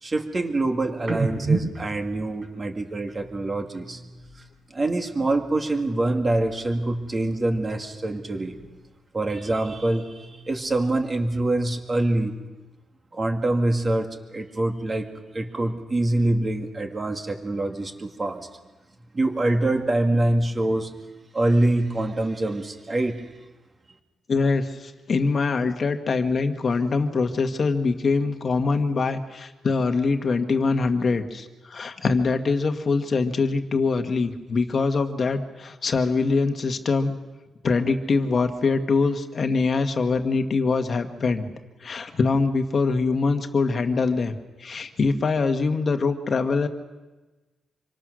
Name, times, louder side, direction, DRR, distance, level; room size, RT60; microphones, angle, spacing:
voice 1, 0.0-4.0 4.7-8.6 9.1-12.4 13.1-18.5 19.1-21.0 21.3-23.3, right 2 dB, 25° right, 4 dB, 2.2 m, -25 dB
sound 1, 1.0-4.6 4.9-6.8 7.0-8.9 9.2-11.1, right 3 dB, 45° right, 5.9 m, -34 dB
voice 2, 24.3-37.2 37.6-41.5 41.8-44.3 44.6-46.7, left 4 dB, 35° left, 6 dB, 1.6 m, -23 dB
26.5 x 25.0 x 6.4 m, 1.2 s
wide cardioid pair, 160°, 0 cm